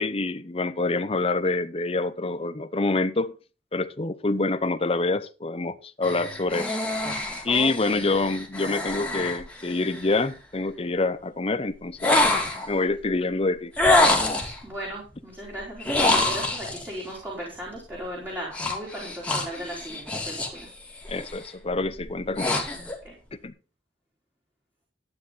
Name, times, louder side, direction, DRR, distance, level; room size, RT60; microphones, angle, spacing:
voice 1, 0.0-3.3 3.7-6.8 7.4-12.2 12.7-13.7 21.1-22.7 23.4-23.5, left 3 dB, 30° left, 0.7 m, -26 dB
sound 1, 6.0-10.2 12.0-12.8 13.8-14.6 15.8-16.9 18.5-20.6 21.0-21.4 21.9-23.0, left 2 dB, 5° left, 2.5 m, -25 dB
voice 2, 7.5-8.1 14.6-20.7 23.0-23.2, right 1 dB, 10° right, 3.7 m, -36 dB
12.0 x 9.7 x 4.0 m
head